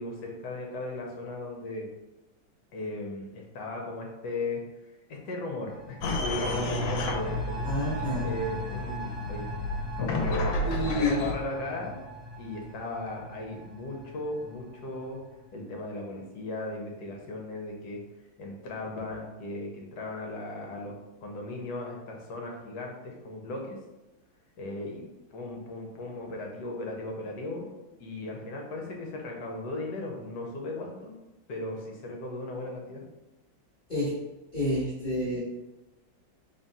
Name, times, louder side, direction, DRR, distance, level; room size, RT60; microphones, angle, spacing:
voice 1, 0.0-1.9 2.7-4.6 5.1-7.7 8.2-9.5 10.0-10.6 10.9-12.0 12.4-15.2 15.5-18.0 18.4-21.0 21.2-23.8 24.6-25.0 25.3-27.7 28.0-31.2 31.5-33.0, left 2 dB, 65° left, 0 dB, 1.3 m, -36 dB
sound 1, 5.7-15.1 15.4-15.5, right 2 dB, 65° right, 1.8 m, -38 dB
sound 2, 6.0-11.3, left 2 dB, 85° left, 1.4 m, -32 dB
voice 2, 7.6-8.3 10.6-11.3 33.9-34.2 34.5-35.4, left 1 dB, 30° left, -11 dB, 1.0 m, -29 dB
3.6 x 2.4 x 4.0 m, 1.0 s
omnidirectional pair, 2.1 m